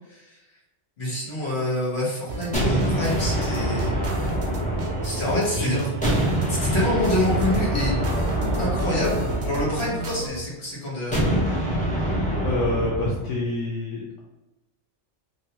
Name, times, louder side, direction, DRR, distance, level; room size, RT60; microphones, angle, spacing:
voice 1, 0.1-0.4 1.0-4.0 5.0-5.8 6.5-7.9 8.6-11.4, left 1 dB, 65° left, -6 dB, 1.4 m, -26 dB
sound 1, 2.3-10.3, right 2 dB, 65° right, 0.8 m, -32 dB
sound 2, 2.5-5.5 6.0-10.3 11.1-13.2, right 1 dB, 10° left, 0.7 m, -25 dB
voice 2, 5.6-5.9 11.9-12.1 12.4-14.2, left 2 dB, 80° left, -4 dB, 0.9 m, -27 dB
3.2 x 2.6 x 2.8 m, 1.0 s
omnidirectional pair, 1.2 m